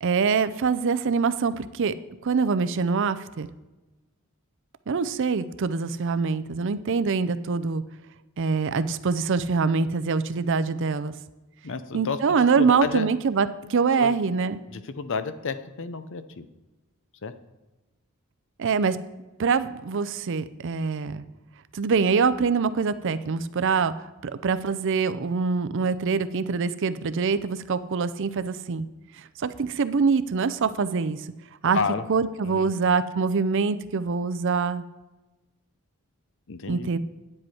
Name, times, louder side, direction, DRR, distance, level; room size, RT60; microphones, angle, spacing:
voice 1, 0.0-2.0 2.2-3.5 4.9-7.8 8.4-11.1 11.9-14.6 18.6-19.0 19.4-21.2 21.7-28.9 29.2-31.3 31.6-31.8 32.1-34.8 36.7-37.0, right 5 dB, 60° right, 13 dB, 0.5 m, -24 dB
voice 2, 11.6-13.1 14.0-14.1 14.7-16.4 17.2-17.3 31.7-32.0 32.4-32.7 36.5-36.9, left 4 dB, 60° left, 12 dB, 0.7 m, -31 dB
9.6 x 7.8 x 4.4 m, 1.1 s
head